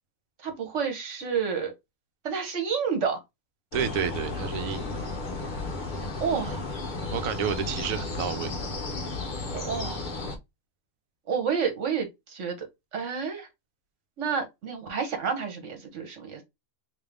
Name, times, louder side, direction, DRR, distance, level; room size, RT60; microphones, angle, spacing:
voice 1, 0.4-1.7 2.2-3.2 6.2-6.6 9.5-10.1 11.3-12.7 12.9-13.5 14.2-16.4, right 6 dB, 55° right, 1.4 m, -29 dB
sound 1, 3.7-10.4, left 3 dB, 45° left, 0.7 m, -33 dB
voice 2, 3.7-4.9 7.1-8.5, right 7 dB, 75° right, 1.1 m, -30 dB
3.6 x 2.8 x 3.4 m
omnidirectional pair, 1.5 m